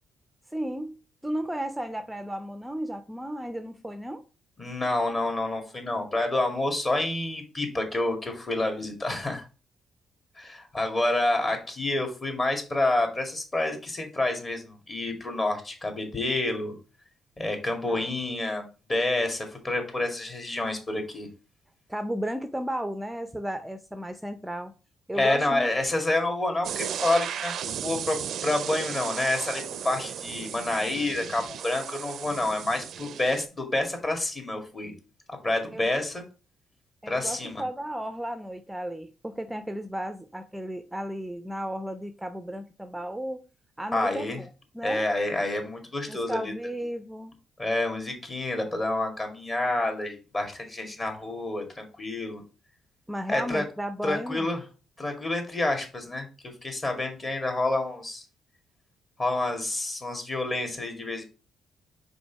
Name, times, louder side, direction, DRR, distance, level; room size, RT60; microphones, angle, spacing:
voice 1, 0.5-4.2 17.9-18.1 21.9-24.7 25.1-25.7 35.7-35.9 37.0-43.4 43.8-44.4 44.7-45.0 46.1-47.4 53.1-54.5, equal, 5° right, 0.5 m, -34 dB
voice 2, 4.6-9.5 10.4-16.7 17.4-21.3 25.1-27.5 27.8-34.9 35.4-36.2 37.1-37.6 43.9-44.4 44.8-46.5 47.6-52.4 53.3-53.6 54.0-54.6 55.0-56.3 56.6-58.2 59.2-61.2, left 2 dB, 30° left, 2.1 m, -28 dB
sound 1, 26.6-33.4, right 9 dB, 70° right, 0.4 m, -35 dB
5.2 x 4.1 x 4.5 m
cardioid pair, 90°, 0 cm